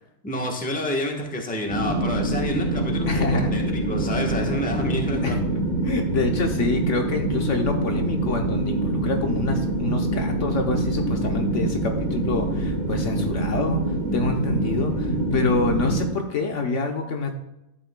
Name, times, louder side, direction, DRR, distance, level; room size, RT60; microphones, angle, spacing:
voice 1, 0.2-5.4, left 1 dB, 5° left, 1 dB, 1.0 m, -28 dB
sound 1, 1.7-16.0, right 1 dB, 70° right, 2.6 m, -25 dB
voice 2, 3.1-3.5 4.8-4.9 5.2-5.4 5.8-17.3, left 3 dB, 60° left, 4 dB, 1.1 m, -27 dB
11.5 x 8.0 x 2.2 m, 0.90 s
omnidirectional pair, 1.5 m